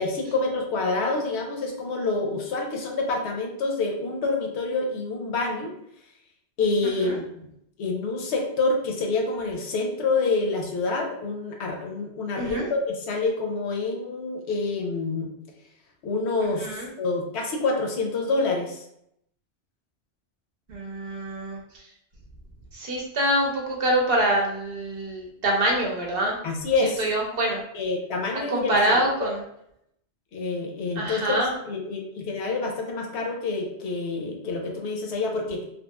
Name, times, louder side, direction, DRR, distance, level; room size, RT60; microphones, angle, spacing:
voice 1, 0.0-5.7 6.6-7.5 7.8-15.3 16.0-18.8 26.4-27.0 27.7-29.0 30.3-35.7, left 3 dB, 75° left, 2 dB, 0.8 m, -27 dB
voice 2, 12.3-12.7 16.4-16.9 20.7-21.8 22.7-26.4 26.8-27.6 28.5-29.4 31.0-31.5, right 1 dB, 60° right, -1 dB, 0.8 m, -25 dB
2.9 x 2.7 x 2.2 m, 0.76 s
omnidirectional pair, 1.2 m